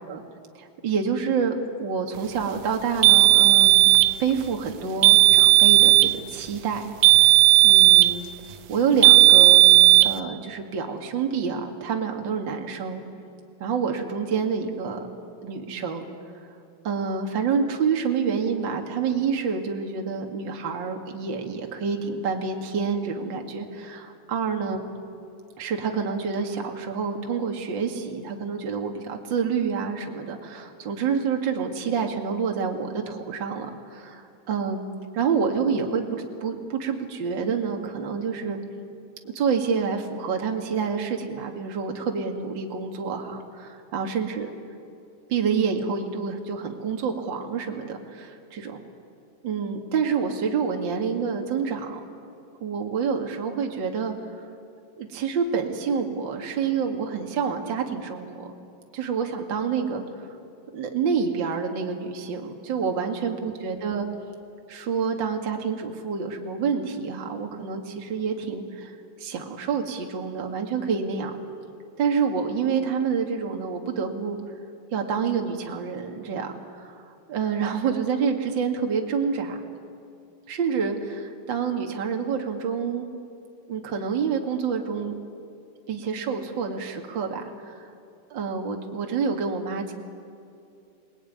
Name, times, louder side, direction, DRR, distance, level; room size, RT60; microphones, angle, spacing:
voice 1, 0.5-3.9 4.2-7.3 7.6-8.2 8.7-9.6 10.0-13.0 13.6-15.0 15.4-16.1 16.8-24.0 24.3-24.9 25.6-34.8 35.1-38.6 39.3-44.5 45.3-48.8 49.4-52.0 52.6-54.1 55.0-58.5 58.9-60.0 60.7-64.1 64.7-71.3 72.0-74.4 74.9-76.5 76.8-77.0 77.3-79.6 80.5-83.0 83.7-85.2 85.9-87.5 88.3-89.9, right 6 dB, 55° right, 2 dB, 1.3 m, -28 dB
sound 1, 3.0-4.2 5.0-6.2 7.0-8.2 9.0-10.2, right 18 dB, 85° right, 3.3 m, -14 dB
28.5 x 19.5 x 9.5 m, 2.6 s
omnidirectional pair, 5.6 m